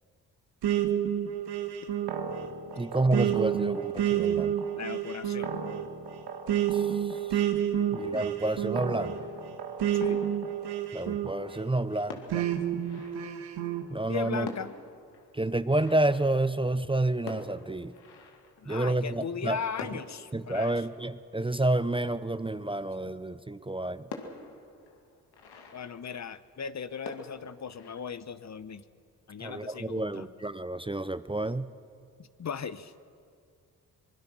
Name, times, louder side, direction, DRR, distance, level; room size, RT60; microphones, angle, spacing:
sound 1, 0.6-11.7 12.3-13.8, right 10 dB, 75° right, 1.7 m, -30 dB
voice 1, 2.8-4.5 6.7-7.2 7.9-9.1 10.9-12.5 13.9-14.5 15.3-17.9 18.7-19.6 20.3-24.0 29.4-31.7, right 2 dB, 15° right, 14 dB, 0.8 m, -29 dB
voice 2, 4.7-5.6 9.9-10.2 14.1-14.7 18.6-20.8 25.7-28.8 29.3-30.3 32.2-32.9, left 6 dB, 45° left, 14 dB, 1.0 m, -37 dB
sound 2, 9.1-11.0 11.7-11.8 12.1-13.8 14.1-14.2 14.4-19.2 19.7-22.4 22.9-23.0 23.3-23.4 24.1-26.7 27.0-27.9, left 4 dB, 70° left, 2.3 m, -47 dB
23.5 x 21.0 x 6.2 m, 2.3 s
hypercardioid pair, 45°, 40 cm